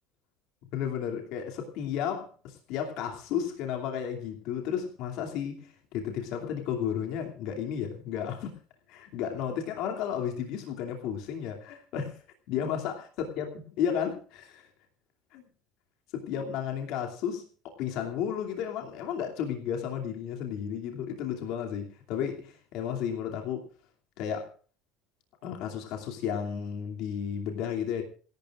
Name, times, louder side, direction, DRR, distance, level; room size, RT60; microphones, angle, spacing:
voice 1, 0.7-8.5 8.9-12.2 12.5-14.7 15.3-15.4 16.1-17.4 17.7-23.7 24.2-24.5 25.4-28.0, left 8 dB, 65° left, 2.7 m, -33 dB
27.5 x 12.5 x 2.5 m
cardioid pair, 135°, 0 cm